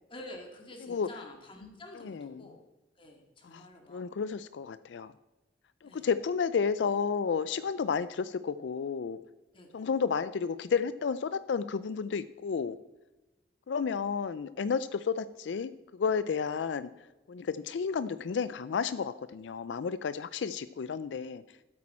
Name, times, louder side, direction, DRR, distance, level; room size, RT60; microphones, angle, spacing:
voice 1, 0.1-2.6 3.0-4.0 5.8-6.1 9.5-9.9 16.5-16.6, left 1 dB, 30° left, 2 dB, 2.0 m, -48 dB
voice 2, 1.9-2.4 3.5-3.6 3.9-5.1 5.8-9.2 9.7-12.8 13.7-16.9 17.3-21.4, left 6 dB, 85° left, 14 dB, 0.4 m, -32 dB
13.0 x 8.6 x 4.3 m, 1.1 s
head